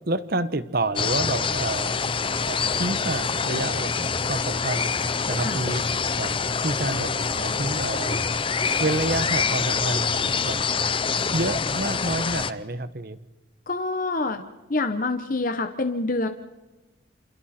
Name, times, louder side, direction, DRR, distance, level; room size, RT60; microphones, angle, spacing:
voice 1, 0.0-2.1 2.4-4.9 5.3-6.3 6.6-10.6 11.3-13.2, right 2 dB, 50° right, 14 dB, 1.1 m, -29 dB
sound 1, 1.0-12.5, left 5 dB, 25° left, 0.7 m, -26 dB
voice 2, 13.7-14.4 14.7-16.3, left 2 dB, 45° left, 7 dB, 1.1 m, -26 dB
28.0 x 27.5 x 4.4 m, 1.1 s
head